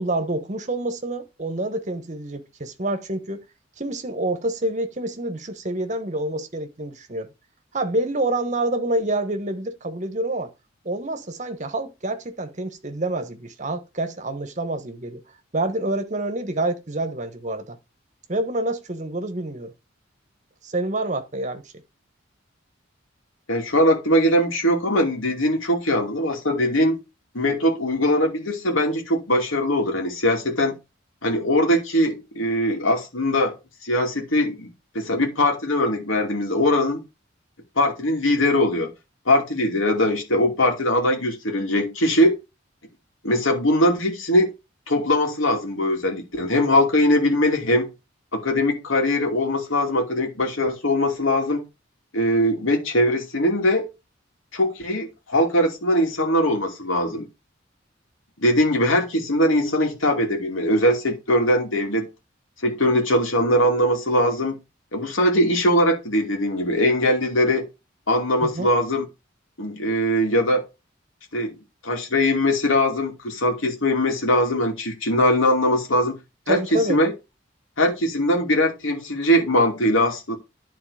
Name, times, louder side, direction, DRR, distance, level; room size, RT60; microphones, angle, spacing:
voice 1, 0.0-3.4 3.8-7.3 7.7-10.5 10.8-15.2 15.5-17.8 18.3-19.7 20.6-21.8 68.4-68.7 76.5-77.0, right 1 dB, 35° right, 1.1 m, -27 dB
voice 2, 23.5-27.0 27.3-30.7 31.2-33.6 33.8-37.0 37.8-38.9 39.3-42.3 43.2-44.5 44.9-47.9 48.3-51.6 52.1-53.9 54.5-57.3 58.4-62.1 62.6-64.6 64.9-67.7 68.1-69.1 69.6-70.6 71.3-71.6 71.8-76.2 76.5-77.1 77.8-80.4, left 1 dB, 80° left, 2.6 m, -21 dB
11.0 x 4.1 x 4.9 m
head